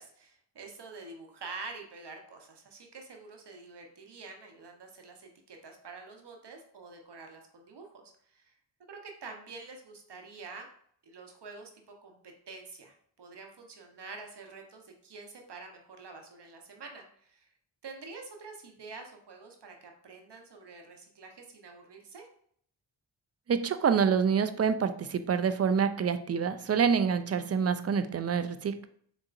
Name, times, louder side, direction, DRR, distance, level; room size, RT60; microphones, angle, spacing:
voice 1, 0.0-8.5 8.9-10.7 11.0-12.2 12.5-17.5 17.8-22.3, right 4 dB, 60° right, 3 dB, 1.0 m, -47 dB
voice 2, 23.5-28.9, right 6 dB, 35° right, 11 dB, 0.4 m, -27 dB
4.1 x 3.6 x 2.5 m, 0.63 s
cardioid pair, 50°, 46 cm